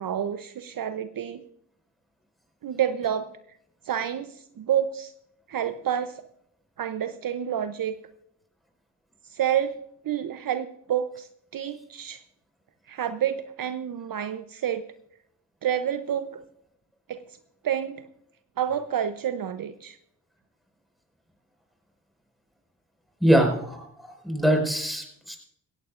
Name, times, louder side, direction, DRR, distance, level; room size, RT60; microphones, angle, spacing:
voice 1, 0.0-1.4 2.6-3.3 3.8-5.1 5.5-6.2 6.8-7.9 9.2-9.8 10.0-12.2 12.9-14.9 15.6-16.4 17.1-17.2 17.6-18.0 18.6-20.0, right 9 dB, 55° right, 10 dB, 0.7 m, -29 dB
voice 2, 23.2-25.4, equal, ahead, 2 dB, 5.1 m, -23 dB
16.5 x 16.5 x 2.5 m, 0.70 s
cardioid pair, 55°, 40 cm